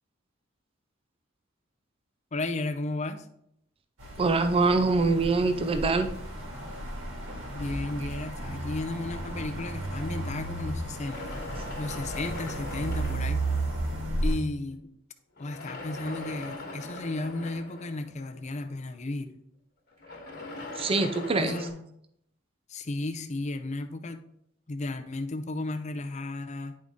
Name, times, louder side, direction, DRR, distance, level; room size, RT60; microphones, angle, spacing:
voice 1, 2.3-3.3 7.5-11.4 11.7-13.5 14.2-14.9 15.4-19.3 21.4-21.9 22.7-24.3 24.7-26.8, left 2 dB, 35° left, 8 dB, 0.5 m, -34 dB
sound 1, 4.0-14.3, right 1 dB, 80° right, 2.1 m, -34 dB
voice 2, 4.2-6.1 20.8-21.6, right 3 dB, 30° right, 8 dB, 0.4 m, -24 dB
sound 2, 9.2-10.4 10.9-14.0 15.4-18.8 19.9-21.7, left 2 dB, 55° left, 1.4 m, -41 dB
9.7 x 3.8 x 3.6 m, 0.75 s
head